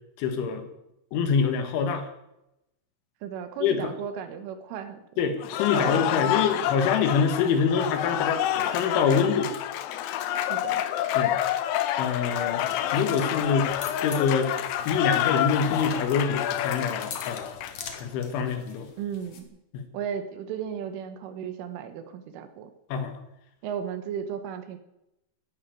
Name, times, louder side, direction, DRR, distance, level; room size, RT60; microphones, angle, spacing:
voice 1, 0.2-0.7 1.1-2.1 3.6-3.9 5.2-9.5 11.2-11.3 12.0-12.7 12.9-13.7 14.0-14.6 14.9-17.6 17.9-18.9 19.7-19.9 22.9-23.1, left 6 dB, 75° left, 7 dB, 3.9 m, -25 dB
voice 2, 3.2-5.0 5.7-6.5 10.5-10.8 19.0-19.5 19.9-22.7 23.6-24.8, right 8 dB, 75° right, 8 dB, 3.8 m, -35 dB
Cheering / Applause, 5.4-18.0, left 12 dB, 90° left, 3.7 m, -28 dB
sound 1, 12.1-19.4, left 5 dB, 55° left, 2.0 m, -43 dB
13.0 x 11.0 x 9.2 m, 0.87 s
omnidirectional pair, 5.8 m